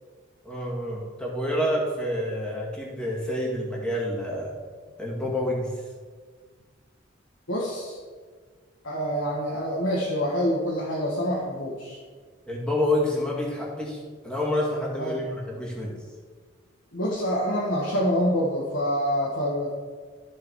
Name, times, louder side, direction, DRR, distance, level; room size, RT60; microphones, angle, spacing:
voice 1, 0.4-4.5 5.0-5.7 12.5-16.0, left 1 dB, 5° left, -4 dB, 2.1 m, -28 dB
voice 2, 7.5-8.0 8.8-12.0 15.0-15.2 16.9-19.7, equal, 75° left, -4 dB, 1.6 m, -26 dB
13.5 x 5.0 x 4.7 m, 1.6 s
head